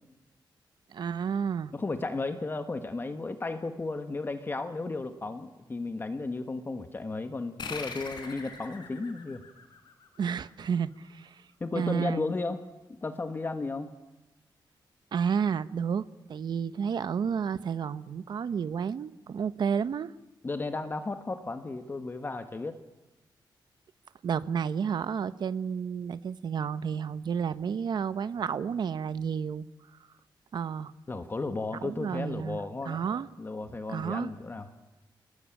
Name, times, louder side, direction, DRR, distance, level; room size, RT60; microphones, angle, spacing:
voice 1, 0.9-1.7 10.2-11.4 11.7-12.2 15.1-20.1 24.2-29.6 30.5-30.9 31.8-32.6 32.8-33.3 33.9-34.3, right 7 dB, 65° right, 14 dB, 1.0 m, -31 dB
voice 2, 1.7-9.4 11.6-12.6 13.0-13.9 20.4-22.8 31.1-33.0 33.4-34.7, left 3 dB, 25° left, 8 dB, 1.4 m, -34 dB
sound 1, 7.6-10.6, left 5 dB, 65° left, 4.7 m, -42 dB
30.0 x 20.0 x 8.9 m, 1.1 s
wide cardioid pair, 150°, 8 cm